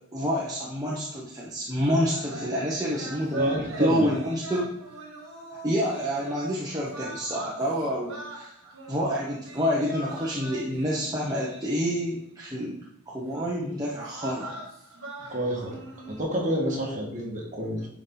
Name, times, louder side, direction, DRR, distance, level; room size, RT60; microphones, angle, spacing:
voice 1, 0.1-4.7 5.6-8.5 8.9-12.7 13.1-14.5, equal, 15° right, -5 dB, 1.0 m, -28 dB
sound 1, 1.9-12.3 13.3-13.5 14.0-16.2, right 2 dB, 60° right, 1.8 m, -42 dB
voice 2, 3.3-4.1 15.3-15.8 16.1-17.9, equal, 35° right, -2 dB, 1.8 m, -28 dB
10.5 x 4.1 x 4.0 m, 0.72 s
head